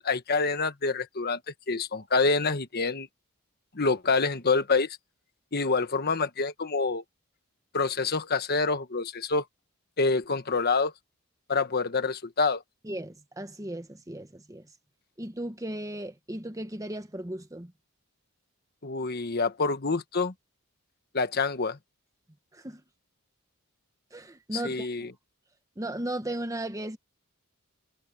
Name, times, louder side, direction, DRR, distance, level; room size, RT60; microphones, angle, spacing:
voice 1, 0.0-1.4 1.7-3.1 3.7-5.0 5.5-7.0 7.7-9.4 10.0-10.9 11.5-12.6 18.8-20.3 21.1-21.8 24.5-25.1, left 4 dB, 45° left, 1.3 m, -26 dB
voice 2, 12.8-14.7 15.2-17.7 22.5-22.8 24.1-25.1 25.8-27.0, right 1 dB, 15° right, 1.3 m, -36 dB
head